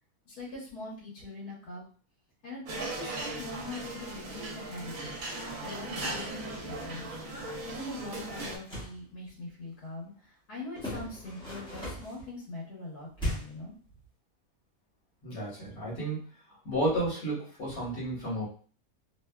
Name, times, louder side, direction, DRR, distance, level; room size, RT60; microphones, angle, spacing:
voice 1, 0.3-1.8 2.4-5.3 5.6-7.1 7.6-13.8, left 2 dB, 90° left, -6 dB, 1.7 m, -42 dB
sound 1, 2.7-8.6, right 2 dB, 65° right, 1.0 m, -38 dB
sound 2, 8.5-9.0 10.7-12.2 13.2-13.7, equal, 5° left, 0.6 m, -36 dB
voice 2, 15.2-16.2 16.7-18.5, right 1 dB, 65° left, -8 dB, 1.7 m, -32 dB
3.3 x 2.3 x 2.2 m, 0.42 s
omnidirectional pair, 1.6 m